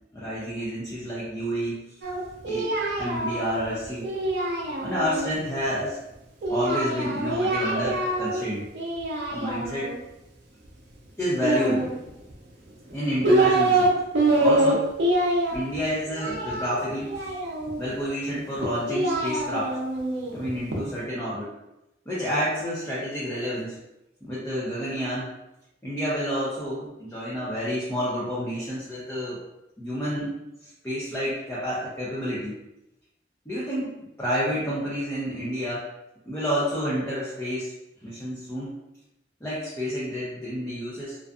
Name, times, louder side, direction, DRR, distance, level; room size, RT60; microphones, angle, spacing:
voice 1, 0.1-1.8 2.4-2.7 3.0-4.1 4.8-6.0 6.5-8.7 9.3-9.9 11.2-11.9 12.9-13.9 14.4-14.9 15.5-17.3 17.8-19.8 20.3-21.5 22.1-23.8 24.2-25.3 25.8-29.4 29.8-30.4 30.8-32.6 33.5-35.8 36.3-37.7 38.0-38.7 39.4-41.2, equal, 15° left, -9 dB, 0.5 m, -29 dB
Singing, 2.0-5.3 6.4-8.4 8.7-10.0 11.4-12.3 12.9-13.9 14.1-17.8 18.6-20.8, right 2 dB, 65° right, 0.5 m, -25 dB
2.5 x 2.4 x 2.3 m, 0.92 s
head